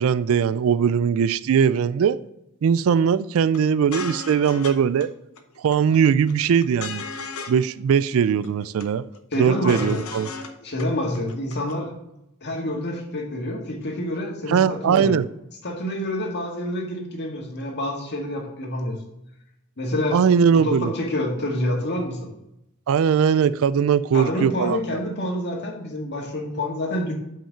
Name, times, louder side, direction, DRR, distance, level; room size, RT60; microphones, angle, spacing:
voice 1, 0.0-2.2 2.6-5.1 5.6-7.0 7.5-9.1 9.4-10.3 14.5-15.3 20.1-20.9 22.9-25.0, right 7 dB, 65° right, 0.3 m, -20 dB
sound 1, 3.5-3.6 3.9-4.8 5.0-5.1 5.4-6.0 6.3-7.6 7.9-8.0 8.3-8.9 9.1-10.5 10.8-10.9 11.1-11.7, left 4 dB, 70° left, 0.9 m, -35 dB
voice 2, 9.3-10.0 10.6-11.9 12.4-15.2 15.6-18.9 19.8-20.2 20.5-22.3 24.1-27.1, left 1 dB, 50° left, 1.8 m, -27 dB
5.8 x 5.6 x 6.6 m
head